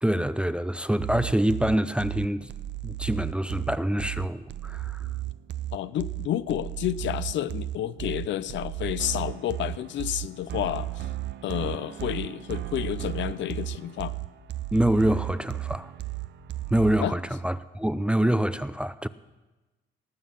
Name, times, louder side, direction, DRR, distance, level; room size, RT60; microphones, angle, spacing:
voice 1, 0.0-2.5 2.8-5.0 14.7-15.9 16.7-19.1, right 1 dB, 5° right, 0.4 m, -25 dB
sound 1, 1.0-17.0, right 14 dB, 60° right, 0.6 m, -34 dB
voice 2, 5.7-11.1 11.4-14.1 17.0-17.2, left 12 dB, 70° left, 0.5 m, -30 dB
18.5 x 7.4 x 5.6 m
cardioid pair, 90°, 20 cm